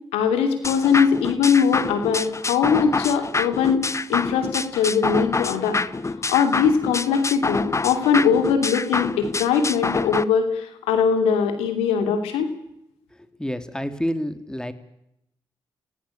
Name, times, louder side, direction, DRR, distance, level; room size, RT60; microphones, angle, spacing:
voice 1, 0.1-5.8 6.3-12.5, left 6 dB, 90° left, 7 dB, 2.9 m, -21 dB
sound 1, 0.6-10.2, left 3 dB, 30° left, 1.0 m, -27 dB
voice 2, 13.4-14.7, equal, 5° left, 10 dB, 3.0 m, -28 dB
26.5 x 17.0 x 8.6 m, 0.79 s
supercardioid pair, 45°, 10 cm